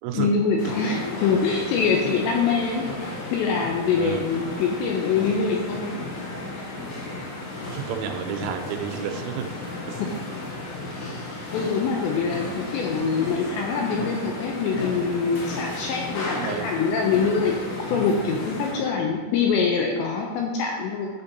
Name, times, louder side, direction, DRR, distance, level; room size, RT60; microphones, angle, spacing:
voice 1, 0.1-2.8 3.3-6.0 10.0-10.1 11.5-17.5 17.9-21.1, left 5 dB, 85° left, 0 dB, 2.6 m, -24 dB
sound 1, 0.6-18.8, left 2 dB, 70° left, 3.4 m, -34 dB
voice 2, 7.7-9.5 9.9-10.0 15.8-16.7 17.3-17.4 18.9-19.1, right 8 dB, 90° right, 4 dB, 3.1 m, -32 dB
10.5 x 5.1 x 2.8 m, 1.5 s
omnidirectional pair, 5.6 m